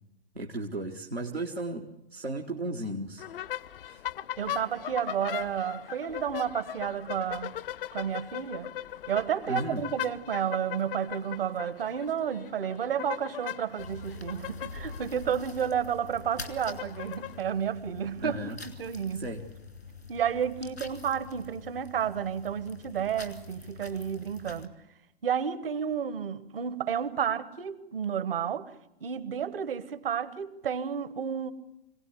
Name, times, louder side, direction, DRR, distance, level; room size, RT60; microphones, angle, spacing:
voice 1, 0.3-3.2 3.8-4.0 9.5-9.8 18.2-18.6 19.1-19.5, right 2 dB, 90° right, 1.6 m, -35 dB
sound 1, 3.2-17.4, left 11 dB, 60° left, 0.8 m, -39 dB
voice 2, 4.4-7.5 7.9-8.7 9.1-19.2 20.1-24.7 25.2-28.7 29.0-31.5, right 8 dB, 65° right, 1.4 m, -31 dB
sound 2, 13.8-24.7, left 3 dB, 90° left, 2.7 m, -45 dB
25.5 x 17.5 x 8.3 m
figure-of-eight pair, 100°, 30 cm